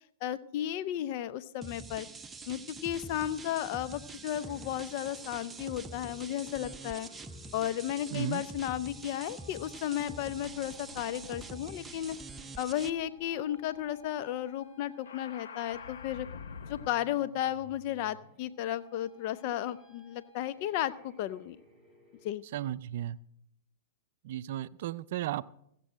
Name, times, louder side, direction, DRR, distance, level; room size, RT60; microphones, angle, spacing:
voice 1, 0.2-2.1 2.5-7.1 7.5-12.2 12.6-16.3 16.7-21.6 22.2-22.4, left 12 dB, 50° left, 14 dB, 0.5 m, -34 dB
sound 1, 1.6-12.9, right 3 dB, 10° right, 0.7 m, -46 dB
sound 2, 3.0-22.4, left 1 dB, 25° left, 4.3 m, -60 dB
sound 3, 6.8-7.6 8.4-16.9, left 6 dB, 70° left, 0.9 m, -51 dB
voice 2, 8.1-8.4 22.5-23.2 24.2-25.5, right 13 dB, 60° right, 16 dB, 0.4 m, -34 dB
16.0 x 7.5 x 6.3 m, 0.75 s
hypercardioid pair, 110°, 0 cm